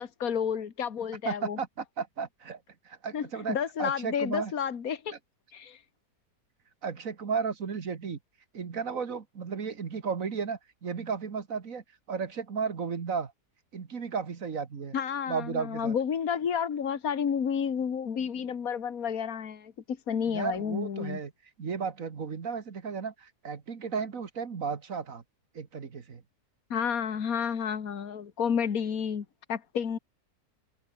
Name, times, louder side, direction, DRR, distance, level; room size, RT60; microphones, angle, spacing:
voice 1, 0.0-1.6 3.1-5.1 5.5-5.8 14.9-21.2 26.7-30.0, left 7 dB, 60° left, 2.0 m, -31 dB
voice 2, 1.2-2.6 2.9-4.5 6.8-8.2 8.5-13.3 13.7-14.9 15.3-16.0 20.3-21.3 21.6-25.2 25.5-26.2, right 6 dB, 55° right, 2.0 m, -34 dB
omnidirectional pair, 1.7 m